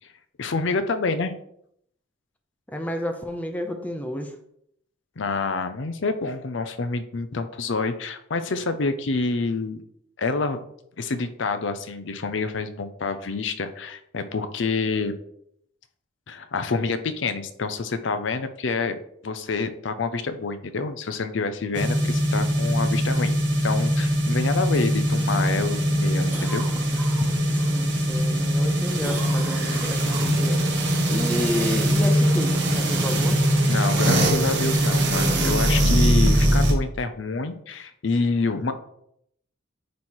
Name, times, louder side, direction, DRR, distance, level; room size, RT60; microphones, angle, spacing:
voice 1, 0.4-1.3 5.2-9.8 10.2-10.6 11.0-15.2 16.3-19.0 19.2-26.7 27.2-27.3 33.7-38.7, left 4 dB, 70° left, 9 dB, 0.6 m, -27 dB
voice 2, 2.7-4.4 27.7-30.6 31.1-33.4, left 1 dB, 10° left, 5 dB, 0.7 m, -30 dB
sound 1, 21.7-36.7, equal, 65° right, 1.4 m, -22 dB
Cough, 24.7-27.7 28.1-28.7 29.0-30.7 35.1-35.2, right 2 dB, 10° right, 1.3 m, -39 dB
9.4 x 3.2 x 4.4 m, 0.72 s
head